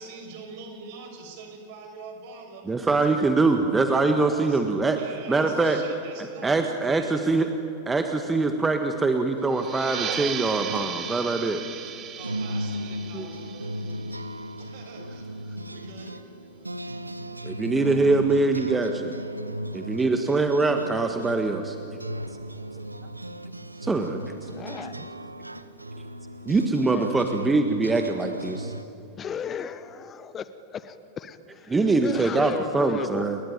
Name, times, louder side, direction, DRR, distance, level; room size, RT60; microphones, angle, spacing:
voice 1, 0.0-3.2 4.4-4.6 5.0-6.5 6.9-7.4 12.2-13.7 14.6-16.1, right 4 dB, 50° right, 4 dB, 6.2 m, -44 dB
voice 2, 2.7-5.0 5.3-5.8 6.4-7.5 7.9-11.6 13.1-13.3 17.4-19.1 19.7-21.8 23.8-24.5 26.4-28.7 31.7-33.4, right 3 dB, 10° right, 6 dB, 1.6 m, -23 dB
sound 1, 9.4-28.9, equal, 85° right, 1.0 m, -36 dB
sound 2, 9.5-14.8, right 8 dB, 30° right, 2.5 m, -36 dB
voice 3, 24.5-24.9 26.9-27.2 29.2-33.2, left 7 dB, 25° left, 14 dB, 1.1 m, -35 dB
30.0 x 22.0 x 9.0 m, 2.9 s
figure-of-eight pair, 90°, 0 cm